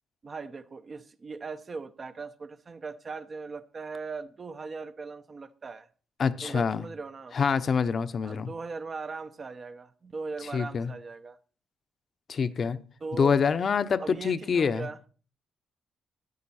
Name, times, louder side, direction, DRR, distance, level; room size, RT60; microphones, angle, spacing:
voice 1, 0.2-5.9 6.4-7.4 8.2-11.4 13.0-13.3 14.0-15.0, right 4 dB, 35° right, 9 dB, 0.8 m, -39 dB
voice 2, 6.2-6.8 7.3-8.5 10.5-10.9 12.3-12.8 13.1-14.9, left 6 dB, 45° left, 12 dB, 0.9 m, -26 dB
13.5 x 9.6 x 4.2 m, 0.40 s
cardioid pair, 90°, 0 cm